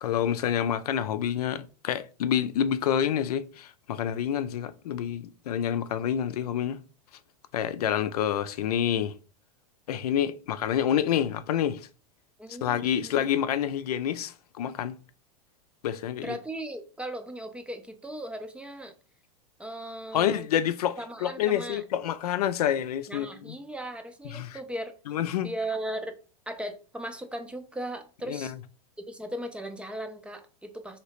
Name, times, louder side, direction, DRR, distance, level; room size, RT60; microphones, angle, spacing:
voice 1, 0.0-6.8 7.5-9.1 9.9-11.9 12.6-14.9 15.8-16.3 20.1-23.5 24.3-24.6 25.1-25.5 28.3-28.6, left 9 dB, 85° left, 0.4 m, -28 dB
voice 2, 12.4-13.3 16.2-18.9 19.6-20.5 21.0-21.8 23.1-24.9 25.4-26.1 26.5-28.5 29.1-31.0, right 1 dB, 5° right, 0.4 m, -37 dB
3.0 x 2.8 x 2.9 m
hypercardioid pair, 110°, 19 cm